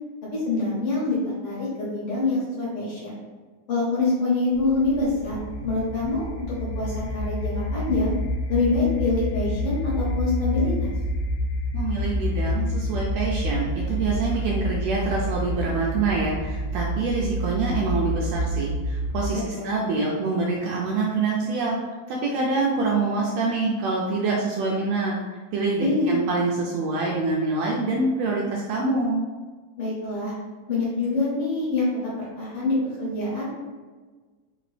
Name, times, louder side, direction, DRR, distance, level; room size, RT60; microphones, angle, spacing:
voice 1, 0.3-1.2 1.4-3.2 3.7-5.4 5.6-8.1 8.5-10.9 19.5-19.8 25.8-26.1 29.8-30.3 30.7-33.5, left 3 dB, 60° left, -7 dB, 1.7 m, -25 dB
sound 1, 4.5-19.4, equal, 85° left, 1.9 m, -28 dB
voice 2, 11.7-21.8 22.1-25.1 25.5-29.2, right 3 dB, 80° right, -3 dB, 1.6 m, -25 dB
4.4 x 2.9 x 3.1 m, 1.4 s
omnidirectional pair, 3.4 m